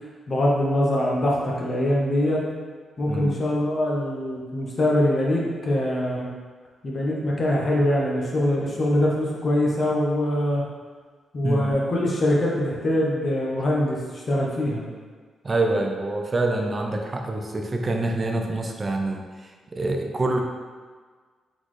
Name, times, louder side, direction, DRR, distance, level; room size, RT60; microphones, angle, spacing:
voice 1, 0.3-2.4 3.0-6.3 6.8-10.6 11.3-14.9, left 1 dB, 35° left, -3 dB, 0.9 m, -23 dB
voice 2, 15.4-20.4, right 2 dB, 25° right, 2 dB, 0.5 m, -26 dB
4.0 x 3.9 x 3.2 m, 1.5 s
wide cardioid pair, 140°, 0 cm